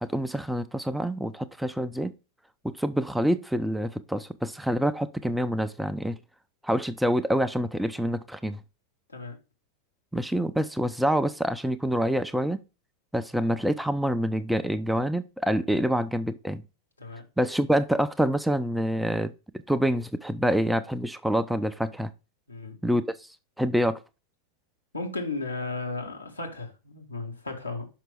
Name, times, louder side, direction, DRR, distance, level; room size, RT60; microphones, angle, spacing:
voice 1, 0.0-2.1 2.6-6.2 6.6-8.6 10.1-12.6 13.1-16.6 17.4-19.3 19.7-22.1 22.8-23.0 23.6-24.0, equal, 5° right, 0.5 m, -26 dB
voice 2, 22.5-22.8 24.9-27.9, left 3 dB, 80° left, 1.8 m, -35 dB
5.8 x 5.6 x 3.5 m
figure-of-eight pair, 90°, 0 cm